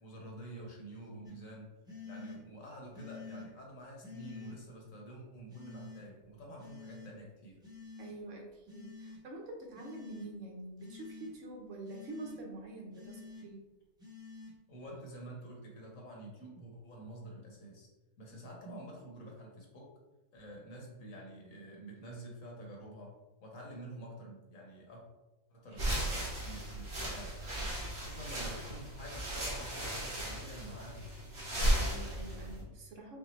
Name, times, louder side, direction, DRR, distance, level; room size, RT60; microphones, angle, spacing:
voice 1, 0.0-1.7 2.0-7.6 14.7-17.9 18.2-19.9 20.3-23.1 23.4-25.0 25.5-27.4 28.0-31.1, right 1 dB, 75° left, -1 dB, 1.4 m, -48 dB
sound 1, 1.2-1.3 1.9-2.4 2.9-3.5 4.0-4.6 5.5-6.0 6.6-7.1 7.6-8.1 8.7-9.2 9.7-10.3 10.8-11.3 11.8-12.4 12.9-13.4 14.0-14.5, left 4 dB, 5° right, 0.8 m, -48 dB
voice 2, 8.0-13.6 27.0-27.1 31.4-33.2, right 2 dB, 70° right, 1 dB, 1.1 m, -46 dB
sound 2, 25.7-32.6, right 1 dB, 50° right, 1.3 m, -35 dB
5.8 x 2.1 x 3.1 m, 1.1 s
omnidirectional pair, 1.4 m